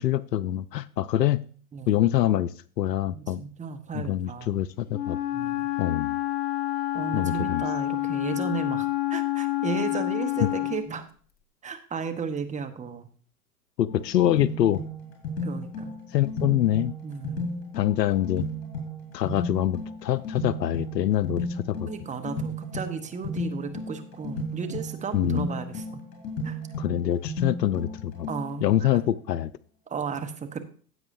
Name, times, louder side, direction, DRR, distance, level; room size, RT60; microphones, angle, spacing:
voice 1, 0.0-1.4 1.9-2.5 2.8-3.4 3.9-5.2 5.8-6.2 7.1-7.6 13.8-14.8 16.1-16.9 17.8-18.5 19.1-21.9 25.1-25.5 26.8-28.3 28.6-29.5, left 12 dB, 85° left, 18 dB, 0.6 m, -25 dB
voice 2, 3.1-4.6 5.3-5.7 6.9-11.1 11.6-13.1 15.4-15.9 17.0-17.5 21.8-26.0 26.4-26.6 28.3-29.0 29.9-30.6, right 6 dB, 15° right, 7 dB, 1.0 m, -34 dB
Wind instrument woodwind instrument, 4.9-10.9, left 15 dB, 20° left, 0.6 m, -28 dB
sound 1, 13.9-28.8, left 1 dB, 60° left, 5.5 m, -34 dB
15.5 x 7.9 x 2.6 m, 0.43 s
hypercardioid pair, 105°, 48 cm